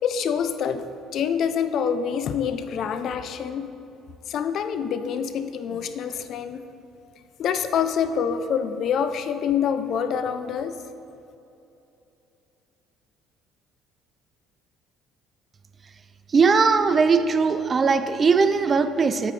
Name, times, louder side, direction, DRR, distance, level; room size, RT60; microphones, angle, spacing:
voice 1, 0.0-3.7 4.3-6.6 7.4-10.8, left 7 dB, 60° left, 11 dB, 0.5 m, -26 dB
voice 2, 16.3-19.3, right 5 dB, 35° right, 11 dB, 0.4 m, -19 dB
8.6 x 8.4 x 3.2 m, 2.8 s
cardioid pair, 100°, 0 cm